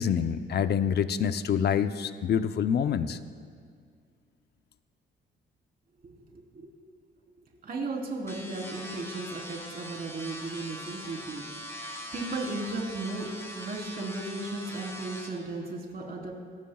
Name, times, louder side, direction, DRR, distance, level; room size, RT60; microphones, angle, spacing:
voice 1, 0.0-3.2, left 8 dB, 55° left, 11 dB, 0.7 m, -26 dB
voice 2, 6.0-6.7 7.4-11.5 12.1-16.3, right 2 dB, 50° right, -1 dB, 3.8 m, -36 dB
sound 1, 8.3-15.3, equal, 15° left, 2.9 m, -42 dB
27.5 x 14.5 x 2.4 m, 2.1 s
cardioid pair, 90°, 20 cm